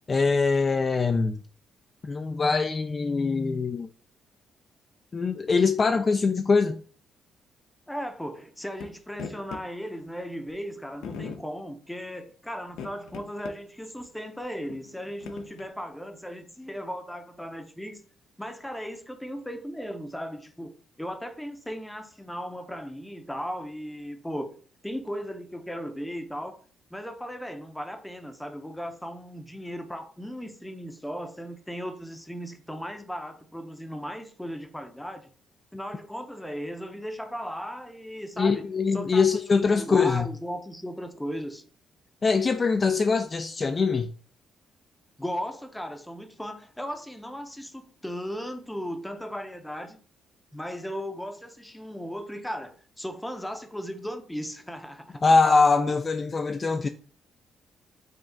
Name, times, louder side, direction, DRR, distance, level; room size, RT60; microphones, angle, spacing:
voice 1, 0.1-1.4 2.0-3.9 5.1-6.8 38.4-40.3 42.2-44.1 55.2-56.9, left 4 dB, 35° left, 0.3 m, -23 dB
voice 2, 7.9-18.0 18.4-20.7 21.0-24.5 24.8-26.6 26.9-35.3 35.7-38.6 38.9-41.6 45.2-50.0 50.5-55.2, equal, 5° left, 0.6 m, -36 dB
sound 1, 8.8-8.9 9.2-9.6 10.5-10.6 11.0-11.4 12.7-13.6 14.0-14.1 14.7-15.7, left 5 dB, 85° left, 0.6 m, -39 dB
4.9 x 2.3 x 3.8 m
cardioid pair, 90°, 0 cm